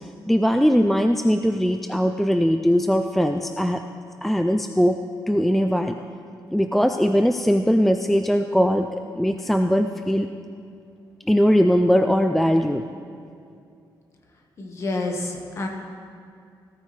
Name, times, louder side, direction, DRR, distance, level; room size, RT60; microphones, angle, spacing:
voice 1, 0.3-3.8 4.2-5.0 5.3-6.0 6.5-10.3 11.3-12.8, equal, ahead, 6 dB, 0.3 m, -20 dB
voice 2, 14.6-15.7, left 2 dB, 35° left, 2 dB, 1.5 m, -28 dB
17.5 x 13.5 x 3.3 m, 2.4 s
wide cardioid pair, 175°, 8 cm